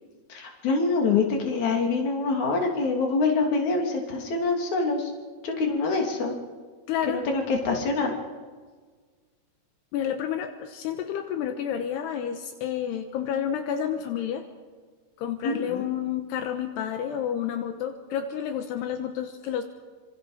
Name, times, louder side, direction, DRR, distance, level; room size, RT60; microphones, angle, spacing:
voice 1, 0.3-5.1 5.4-6.3 7.1-8.1 15.4-15.9, left 4 dB, 50° left, 2 dB, 3.9 m, -25 dB
voice 2, 6.9-7.2 9.9-14.4 15.2-19.6, left 9 dB, 80° left, 6 dB, 3.1 m, -30 dB
26.5 x 26.0 x 5.1 m, 1.5 s
omnidirectional pair, 4.8 m